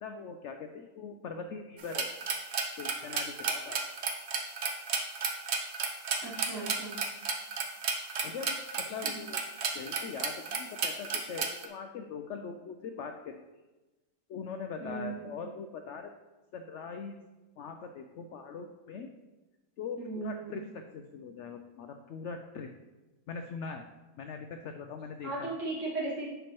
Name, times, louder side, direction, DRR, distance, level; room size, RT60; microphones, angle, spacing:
voice 1, 0.0-2.1 2.8-3.8 8.2-9.4 9.7-13.4 14.3-16.1 16.5-17.2 17.6-19.1 19.8-22.7 23.3-23.8 24.2-25.5, left 5 dB, 85° left, 5 dB, 0.6 m, -41 dB
sound 1, 1.8-11.7, right 5 dB, 55° right, 0.8 m, -33 dB
voice 2, 6.2-7.0 9.0-9.2 14.8-15.3 20.0-20.6 25.2-26.3, right 3 dB, 80° right, -7 dB, 2.8 m, -37 dB
10.5 x 4.4 x 3.0 m, 1.1 s
omnidirectional pair, 1.8 m